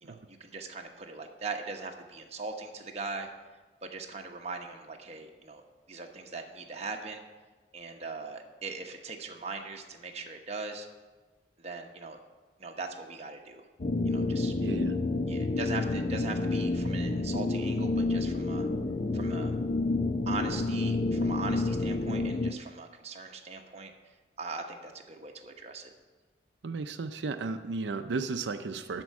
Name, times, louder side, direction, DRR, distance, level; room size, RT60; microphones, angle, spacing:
voice 1, 0.0-3.3 3.8-5.6 5.9-7.2 7.7-10.9 11.6-12.2 12.6-13.7 14.0-14.5 15.3-18.7 19.1-19.5 20.3-23.9 24.4-25.9, right 3 dB, 40° right, 2 dB, 1.0 m, -40 dB
sound 1, 13.8-22.5, left 2 dB, 45° left, 0.6 m, -29 dB
voice 2, 14.6-14.9 26.6-29.0, right 4 dB, 90° right, 8 dB, 0.5 m, -34 dB
12.5 x 4.5 x 8.3 m, 1.3 s
head